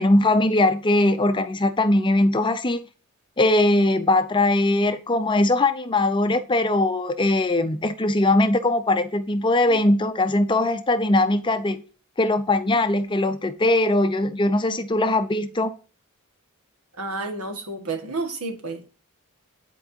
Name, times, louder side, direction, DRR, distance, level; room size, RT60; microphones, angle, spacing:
voice 1, 0.0-2.8 3.4-11.8 12.2-15.7, left 2 dB, 20° left, 0.5 m, -20 dB
voice 2, 16.9-18.9, right 3 dB, 85° right, 1.6 m, -30 dB
10.0 x 4.6 x 2.7 m
head